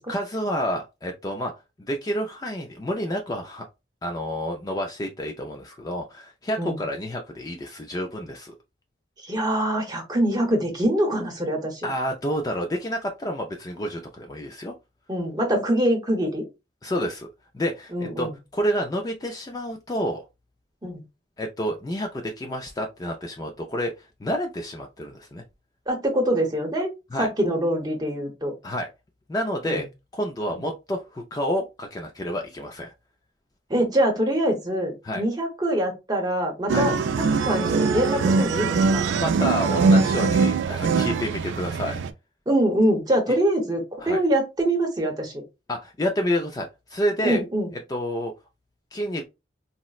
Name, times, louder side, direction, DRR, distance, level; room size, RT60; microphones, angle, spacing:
voice 1, 0.1-1.5 1.9-3.7 4.0-8.6 11.8-14.7 16.8-17.3 17.5-20.2 21.4-25.4 27.1-27.3 28.6-28.9 29.3-29.9 30.1-32.9 35.0-35.2 36.7-36.9 39.1-42.0 44.0-44.2 45.7-47.4 47.9-48.3 48.9-49.2, equal, 20° left, 0.3 m, -29 dB
voice 2, 9.2-11.9 15.1-16.4 17.9-18.3 20.8-21.0 25.9-26.9 27.2-28.6 29.6-29.8 30.5-30.6 33.7-39.0 42.5-45.3 47.2-47.7, right 1 dB, 20° right, 0.8 m, -24 dB
sound 1, 36.7-42.1, right 4 dB, 75° right, 0.3 m, -22 dB
4.0 x 2.0 x 2.3 m
head